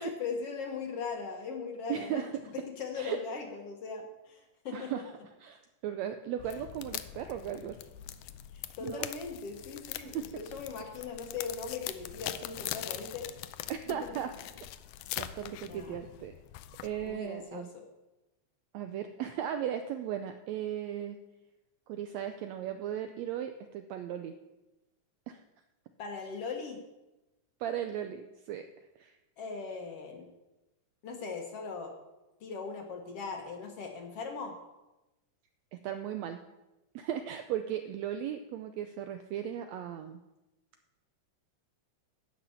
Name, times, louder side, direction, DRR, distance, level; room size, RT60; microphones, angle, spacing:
voice 1, 0.0-2.3 2.7-5.1 8.5-13.3 13.9-14.1 15.7-16.0 17.0-17.8 26.0-26.8 29.4-30.3 31.0-31.9 32.4-34.6, left 5 dB, 55° left, 3 dB, 2.0 m, -39 dB
voice 2, 1.9-2.3 3.0-3.2 4.7-5.0 5.4-7.8 8.8-9.1 10.0-10.3 13.7-14.3 15.2-16.3 16.8-17.7 18.7-21.2 21.9-24.4 25.3-25.4 27.6-28.7 29.0-29.2 35.7-36.4 37.0-40.2, right 10 dB, 80° right, 8 dB, 1.6 m, -36 dB
sound 1, 6.4-17.2, left 13 dB, 80° left, 1.9 m, -42 dB
11.5 x 6.0 x 8.5 m, 1.0 s
omnidirectional pair, 3.7 m